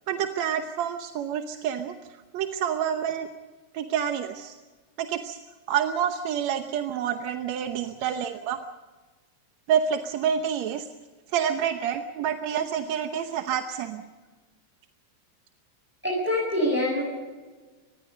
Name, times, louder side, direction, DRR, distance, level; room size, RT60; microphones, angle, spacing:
voice 1, 0.1-1.9 2.3-3.3 3.7-4.6 5.0-5.4 5.7-8.6 9.7-10.9 11.3-14.0, right 8 dB, 70° right, 6 dB, 2.2 m, -28 dB
voice 2, 16.0-17.0, left 1 dB, 5° right, -5 dB, 7.2 m, -25 dB
25.5 x 20.5 x 5.4 m, 1.3 s
omnidirectional pair, 3.4 m